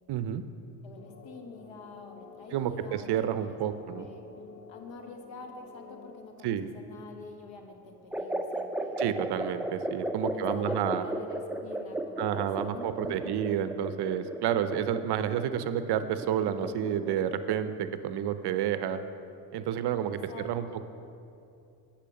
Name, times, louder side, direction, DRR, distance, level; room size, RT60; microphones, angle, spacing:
voice 1, 0.1-0.4 2.5-4.1 6.4-6.7 9.0-11.0 12.2-19.0 19.5-20.2 20.4-20.8, right 9 dB, 55° right, 11 dB, 0.6 m, -30 dB
voice 2, 0.8-3.1 3.4-4.2 4.7-9.0 10.3-13.5 20.1-20.8, left 3 dB, 60° left, 4 dB, 1.3 m, -47 dB
sound 1, 1.0-6.1, left 5 dB, 85° left, 0.9 m, -50 dB
sound 2, 8.1-17.7, right 1 dB, 5° right, 0.4 m, -35 dB
8.3 x 5.7 x 6.4 m, 2.6 s
supercardioid pair, 70°, 50 cm